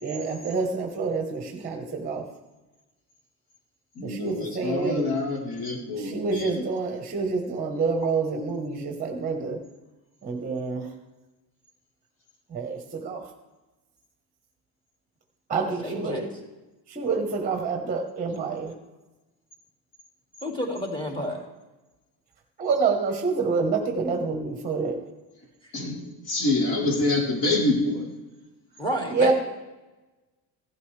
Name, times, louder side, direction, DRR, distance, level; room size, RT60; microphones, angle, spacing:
voice 1, 0.0-2.3 4.0-5.1 6.0-9.6 10.2-10.9 12.5-13.3 15.5-16.3 16.9-18.8 22.6-25.0 29.1-29.3, right 4 dB, 20° right, 3 dB, 1.2 m, -27 dB
voice 2, 4.0-6.6 25.7-28.1, left 2 dB, 55° left, -2 dB, 3.7 m, -26 dB
voice 3, 15.5-16.2 20.4-21.4 28.8-29.3, equal, 10° left, 1 dB, 2.3 m, -30 dB
15.5 x 12.5 x 3.3 m, 1.1 s
cardioid pair, 160°, 42 cm